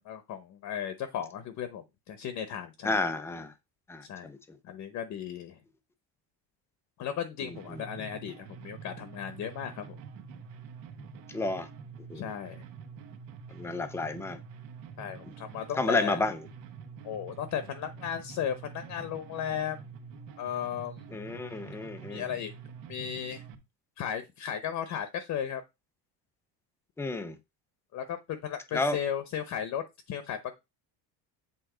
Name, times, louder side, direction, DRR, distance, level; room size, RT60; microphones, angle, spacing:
voice 1, 0.0-3.0 4.0-4.3 4.6-5.6 7.0-10.0 12.1-12.6 15.0-16.2 17.0-19.8 20.4-21.0 22.1-22.5 22.9-23.4 24.0-25.6 27.9-30.6, left 9 dB, 40° left, 0.9 m, -35 dB
voice 2, 2.8-3.5 3.9-4.4 7.4-8.1 11.3-11.7 12.1-12.3 13.5-14.4 15.8-16.5 21.1-22.3 27.0-27.4 28.7-29.0, left 3 dB, 5° left, 0.4 m, -31 dB
sound 1, 7.5-23.6, right 6 dB, 65° right, 1.4 m, -46 dB
8.2 x 3.6 x 4.9 m
cardioid pair, 175°, 44 cm